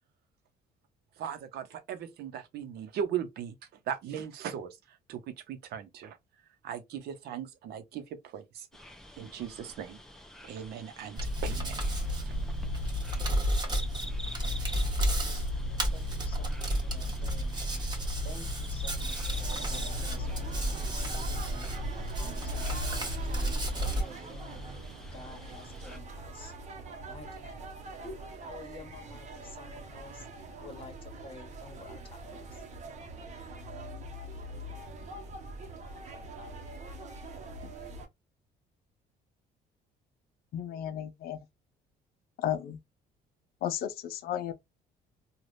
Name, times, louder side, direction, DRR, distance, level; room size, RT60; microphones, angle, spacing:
voice 1, 1.2-3.5 3.9-6.2 6.6-8.7 9.2-10.0 10.4-11.8 12.2-12.4, right 8 dB, 70° right, 0.8 m, -38 dB
sound 1, 8.7-26.0, equal, 5° left, 0.6 m, -48 dB
Hands, 11.2-24.0, equal, 25° right, 1.2 m, -31 dB
voice 2, 14.5-17.5 18.2-21.7 22.1-24.6 25.1-26.5 27.0-27.7 28.0-30.3 30.6-32.2 32.5-32.6, left 3 dB, 30° left, 1.2 m, -50 dB
sound 2, 19.3-38.1, right 2 dB, 45° right, 0.9 m, -44 dB
voice 3, 40.5-41.4 42.4-42.8 43.6-44.5, left 10 dB, 65° left, 0.5 m, -33 dB
3.3 x 2.4 x 2.5 m
cardioid pair, 110°, 17 cm